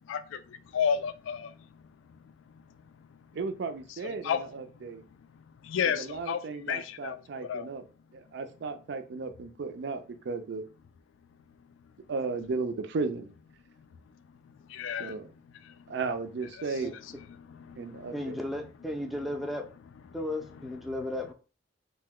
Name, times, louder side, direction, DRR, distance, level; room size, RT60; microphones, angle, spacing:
voice 1, 0.1-1.8 2.1-2.2 2.5-2.6 3.0-3.1 4.2-4.4 5.3-7.7 14.7-15.1 15.7-15.8 17.7-18.1, left 7 dB, 85° left, 0.3 m, -33 dB
voice 2, 3.3-5.0 5.9-7.8 8.1-10.6 12.1-13.3 15.0-15.2 15.9-16.9 17.8-18.4, right 4 dB, 65° right, 0.4 m, -35 dB
voice 3, 18.1-19.6 20.1-21.3, left 1 dB, ahead, 0.4 m, -34 dB
2.7 x 2.1 x 3.6 m
head